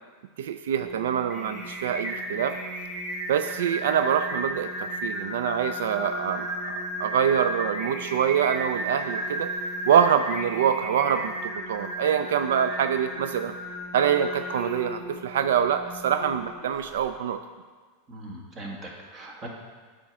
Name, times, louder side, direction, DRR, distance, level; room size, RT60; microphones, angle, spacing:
voice 1, 0.4-2.6 3.3-9.5 9.9-13.5 13.9-17.4, right 8 dB, 85° right, 9 dB, 0.3 m, -25 dB
Singing, 0.8-17.0, equal, 5° right, 2.4 m, -34 dB
voice 2, 18.1-19.5, right 1 dB, 25° right, -1 dB, 1.6 m, -40 dB
8.8 x 3.7 x 6.0 m, 1.5 s
supercardioid pair, 130°, 0 cm